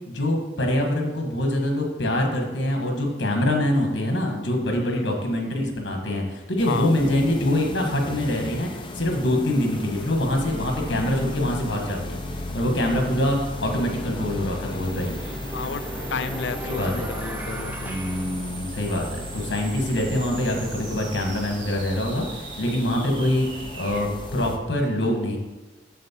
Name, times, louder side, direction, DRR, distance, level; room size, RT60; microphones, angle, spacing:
voice 1, 0.1-12.2 12.5-15.1 16.6-17.0 17.8-23.5 23.7-25.4, left 1 dB, 85° left, 2 dB, 1.5 m, -24 dB
voice 2, 4.7-5.1 6.7-6.9 15.5-15.8 16.1-18.0, left 5 dB, 70° left, 11 dB, 0.4 m, -32 dB
sound 1, 6.6-24.6, left 2 dB, 25° left, 0.7 m, -35 dB
sound 2, 9.5-24.1, right 6 dB, 80° right, 1.3 m, -43 dB
sound 3, 13.9-19.1, right 1 dB, 10° right, 0.8 m, -38 dB
7.5 x 6.6 x 4.4 m, 1.2 s
head